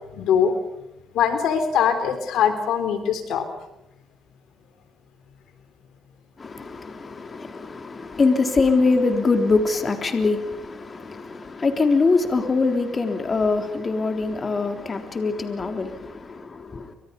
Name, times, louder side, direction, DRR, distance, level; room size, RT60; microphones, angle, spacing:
voice 1, 0.1-0.5 1.1-3.5, left 8 dB, 80° left, 3.7 m, -22 dB
voice 2, 6.4-16.9, left 3 dB, 35° left, 3.7 m, -23 dB
29.5 x 26.5 x 5.4 m
cardioid pair, 90°, 0 cm